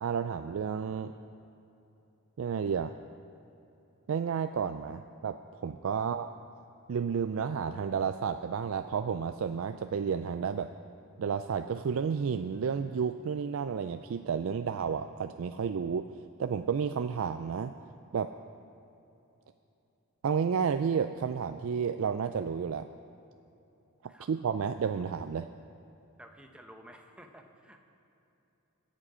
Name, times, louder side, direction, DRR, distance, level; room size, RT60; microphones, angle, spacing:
voice 1, 0.0-1.1 2.4-2.9 4.1-6.3 6.9-10.7 11.2-16.1 16.4-17.7 18.1-18.3 20.2-22.9 24.3-25.5, right 6 dB, 70° right, 8 dB, 0.4 m, -31 dB
voice 2, 26.2-27.9, equal, 5° right, 3 dB, 0.9 m, -53 dB
22.0 x 7.5 x 5.0 m, 2.9 s
head